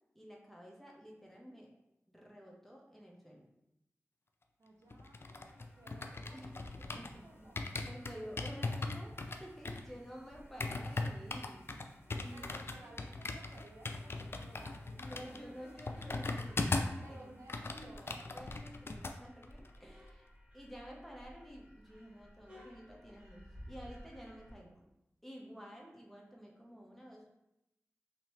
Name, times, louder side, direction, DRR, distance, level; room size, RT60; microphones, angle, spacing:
voice 1, 0.1-1.7 2.1-3.5 6.2-6.5 7.0-7.5 7.8-11.9 12.1-12.6 15.0-17.4 17.7-20.3 20.5-23.4 23.7-24.9 25.2-27.3, equal, 5° left, -2 dB, 0.9 m, -51 dB
voice 2, 4.6-7.9 12.3-15.6 17.0-18.3, right 2 dB, 75° right, -2 dB, 0.6 m, -58 dB
sound 1, 4.9-7.2 7.6-17.0 17.3-19.2 19.4-19.7, left 3 dB, 50° left, 0.3 m, -39 dB
sound 2, 5.2-24.5, equal, 20° right, 1.3 m, -58 dB
2.9 x 2.8 x 3.1 m, 0.86 s
cardioid pair, 45°, 5 cm